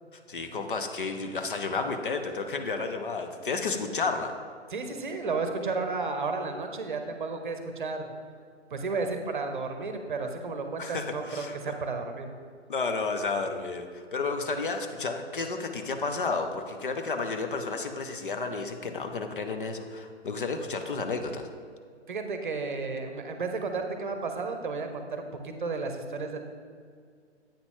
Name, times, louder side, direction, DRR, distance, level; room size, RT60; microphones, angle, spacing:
voice 1, 0.3-4.3 10.8-11.7 12.7-21.5, left 4 dB, 50° left, 6 dB, 0.6 m, -32 dB
voice 2, 4.7-8.1 8.7-12.3 22.1-26.5, right 4 dB, 45° right, 6 dB, 0.8 m, -33 dB
8.5 x 5.8 x 3.7 m, 2.1 s
figure-of-eight pair, 130°, 35 cm